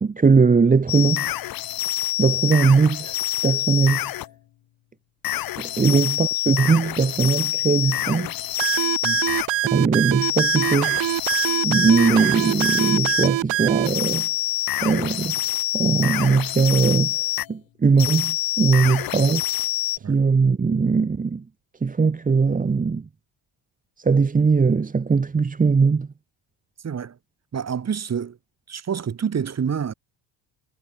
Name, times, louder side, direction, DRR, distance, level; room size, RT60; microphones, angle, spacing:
voice 1, 0.0-1.2 2.2-3.2 3.4-4.0 5.6-8.5 9.7-11.0 11.6-14.3 14.8-15.3 15.7-17.1 17.5-19.4 20.1-21.4 21.8-23.0 24.0-26.1, right 5 dB, 15° right, 1.2 m, -20 dB
sound 1, 0.9-4.3 5.2-9.5 10.2-13.4 13.8-17.5 18.0-20.0, left 14 dB, 50° left, 0.8 m, -26 dB
sound 2, 8.6-13.9, right 16 dB, 70° right, 3.1 m, -24 dB
voice 2, 26.8-27.2 27.5-28.4 28.7-29.9, right 7 dB, 35° right, 4.5 m, -28 dB
cardioid pair, 140°, 46 cm